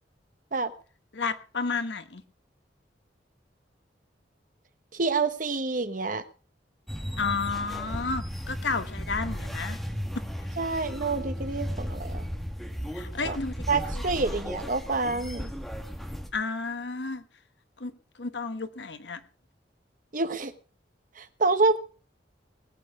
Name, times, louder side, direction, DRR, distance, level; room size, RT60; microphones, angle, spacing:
voice 1, 1.1-2.2 7.2-9.8 12.9-13.5 13.9-14.3 16.3-17.2 17.8-17.9 18.2-19.2, left 4 dB, 75° left, 1.2 m, -32 dB
voice 2, 4.9-6.2 10.6-12.2 13.2-13.4 13.7-15.5 20.1-20.5 21.2-21.8, right 3 dB, 45° right, 1.1 m, -27 dB
sound 1, 6.9-16.3, equal, ahead, 1.7 m, -35 dB
19.5 x 8.7 x 4.8 m
head